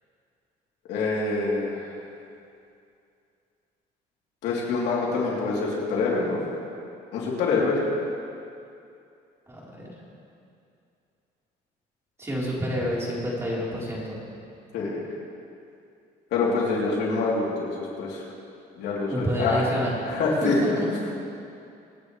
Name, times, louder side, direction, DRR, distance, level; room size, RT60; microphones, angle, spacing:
voice 1, 0.9-1.9 4.4-6.4 7.1-7.8 14.7-15.0 16.3-18.2 18.8-19.7 20.0-20.8, left 3 dB, 85° left, -4 dB, 3.3 m, -25 dB
voice 2, 9.5-9.9 12.2-14.2 19.1-20.0 20.4-20.9, equal, 15° right, -6 dB, 4.0 m, -28 dB
24.5 x 9.6 x 3.3 m, 2.5 s
cardioid pair, 110°, 17 cm